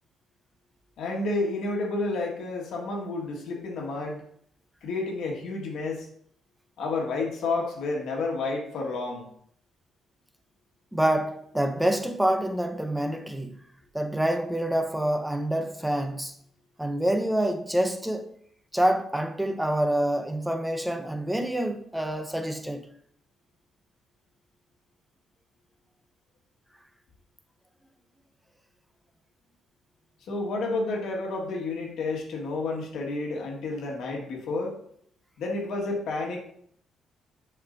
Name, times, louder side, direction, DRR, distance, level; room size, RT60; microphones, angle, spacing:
voice 1, 1.0-4.2 4.8-6.1 6.8-9.3 30.3-34.8 35.4-36.4, left 3 dB, 75° left, 1.5 m, -30 dB
voice 2, 10.9-13.6 13.9-16.4 16.8-18.4 18.7-22.9, right 1 dB, 5° right, 0.6 m, -27 dB
6.8 x 5.3 x 2.6 m
cardioid pair, 90°, 0 cm